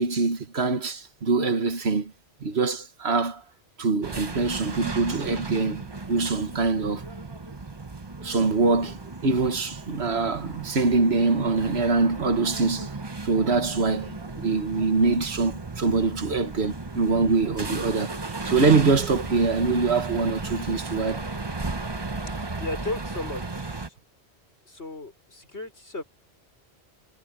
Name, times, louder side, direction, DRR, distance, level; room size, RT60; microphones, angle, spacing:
voice 1, 0.0-2.1 2.4-3.4 3.8-7.0 8.2-12.9 13.2-21.2, right 4 dB, 75° right, 1.7 m, -24 dB
sound 1, 4.0-23.9, right 3 dB, 25° right, 1.0 m, -35 dB
voice 2, 22.6-24.0 24.7-26.0, left 2 dB, 90° left, 5.7 m, -35 dB
omnidirectional pair, 1.1 m